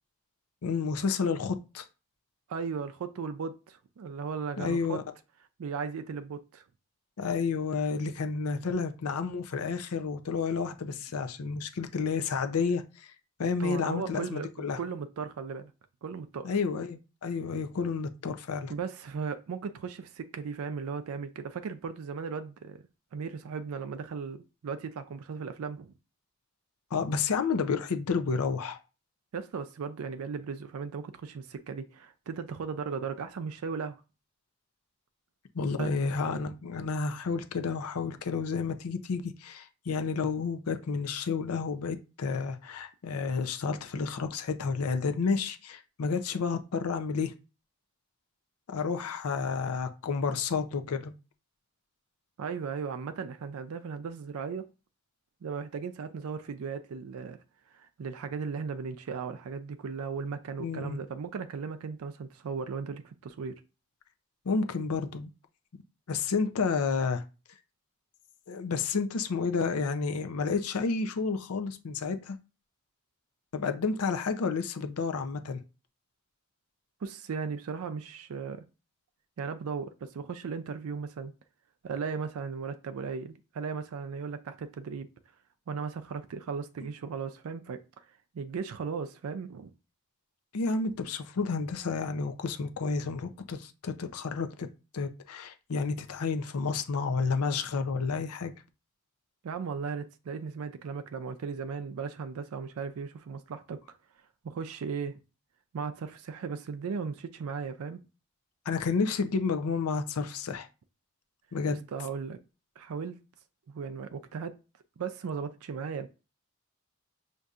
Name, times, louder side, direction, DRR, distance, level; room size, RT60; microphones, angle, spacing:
voice 1, 0.6-1.9 4.6-5.0 7.2-13.1 13.4-14.8 16.4-18.7 26.9-28.8 35.5-47.3 48.7-51.1 60.6-61.0 64.5-65.3 66.1-67.2 68.5-72.4 73.5-75.6 90.5-94.7 94.9-98.5 108.7-110.7 111.5-111.8, left 5 dB, 90° left, 0.5 m, -30 dB
voice 2, 2.5-5.0 5.6-6.6 13.6-14.5 14.8-15.7 16.0-16.5 18.7-22.8 23.1-25.9 29.3-34.0 35.8-35.9 52.4-54.7 55.4-57.4 57.7-63.6 77.0-78.6 79.4-81.3 81.8-85.1 85.7-88.0 88.3-89.7 99.4-103.8 104.4-105.2 105.7-108.0 111.9-112.4 112.8-113.2 113.7-114.6 115.0-116.1, right 5 dB, 80° right, 0.4 m, -36 dB
6.5 x 2.6 x 2.4 m
head